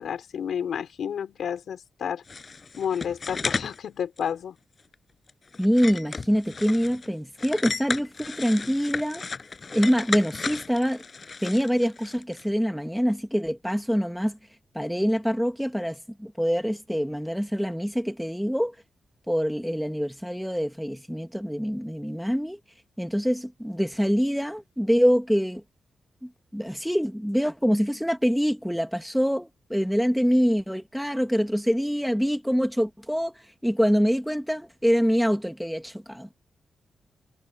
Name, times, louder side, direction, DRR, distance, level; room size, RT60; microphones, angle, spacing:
voice 1, 0.0-2.2 2.8-4.6, left 8 dB, 75° left, 5.6 m, -31 dB
sound 1, 2.3-3.8 4.2-4.3 4.8-4.9 5.3-7.1 7.4-12.5, left 4 dB, 35° left, 7.4 m, -34 dB
voice 2, 5.6-9.2 9.7-11.0 11.4-14.4 14.7-18.8 19.3-22.6 23.0-25.6 26.2-36.3, equal, ahead, 1.7 m, -25 dB
wide cardioid pair, 130°, 0 cm